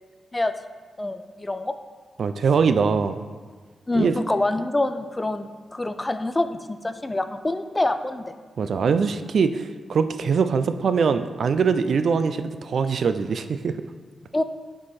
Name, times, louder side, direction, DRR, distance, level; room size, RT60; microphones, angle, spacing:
voice 1, 1.0-1.7 3.9-8.2 14.3-14.4, left 2 dB, 15° left, 9 dB, 0.3 m, -26 dB
voice 2, 2.2-3.2 3.9-4.2 8.6-13.8, right 5 dB, 65° right, 10 dB, 0.3 m, -22 dB
7.7 x 3.8 x 4.2 m, 1.5 s
wide cardioid pair, 110°, 0 cm